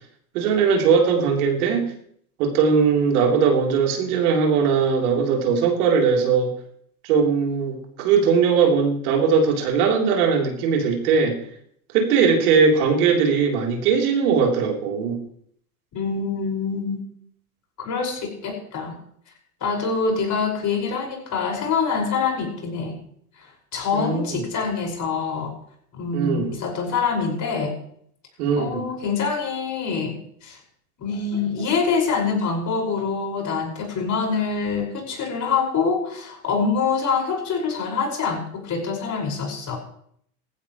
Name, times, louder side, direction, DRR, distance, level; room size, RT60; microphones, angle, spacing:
voice 1, 0.3-1.9 2.4-6.5 7.0-11.4 11.9-15.2 23.9-24.4 26.1-26.5 28.4-28.9, right 5 dB, 70° right, 1 dB, 3.6 m, -20 dB
voice 2, 15.9-17.0 17.8-19.0 19.6-23.0 23.4-25.5 25.9-27.8 28.6-30.2 30.4-30.6 31.0-39.8, left 5 dB, 40° left, 1 dB, 5.5 m, -25 dB
18.5 x 15.0 x 3.1 m, 0.65 s
hypercardioid pair, 95°, 46 cm